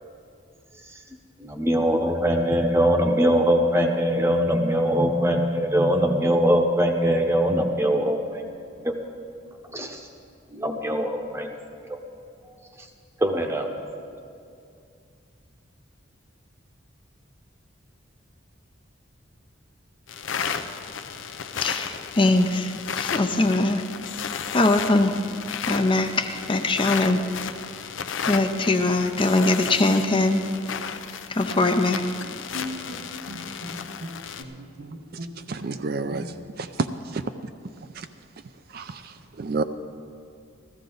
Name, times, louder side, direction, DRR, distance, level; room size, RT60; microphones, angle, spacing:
voice 1, 1.4-8.4 8.8-8.9 9.7-10.0 10.5-11.5 11.8-12.0 12.8-12.9 13.2-13.7, equal, 15° right, 4 dB, 0.8 m, -22 dB
sound 1, 20.1-34.4, left 7 dB, 70° left, 0.6 m, -33 dB
voice 2, 21.6-23.8 24.5-25.1 25.7-27.2 28.3-30.4 31.3-32.0, left 2 dB, 25° left, 6 dB, 0.5 m, -21 dB
Bowed string instrument, 32.2-36.7, equal, 90° right, 1.0 m, -39 dB
voice 3, 35.5-36.3 36.6-36.7 37.1-37.2 38.0-38.1 38.7-39.1 39.4-39.6, right 3 dB, 50° right, 9 dB, 0.4 m, -29 dB
14.5 x 14.0 x 3.9 m, 2.4 s
head